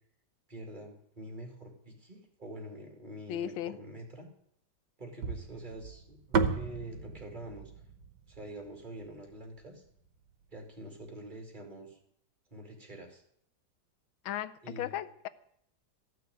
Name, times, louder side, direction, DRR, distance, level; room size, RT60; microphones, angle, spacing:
voice 1, 0.5-4.3 5.0-7.7 8.3-9.8 10.5-12.0 12.5-13.2 14.6-15.0, right 1 dB, 25° right, 2 dB, 2.3 m, -46 dB
voice 2, 3.3-3.8 14.2-15.3, left 11 dB, 90° left, 15 dB, 1.4 m, -36 dB
sound 1, 5.2-9.5, right 5 dB, 65° right, 1.5 m, -34 dB
14.0 x 6.3 x 9.3 m, 0.72 s
omnidirectional pair, 2.1 m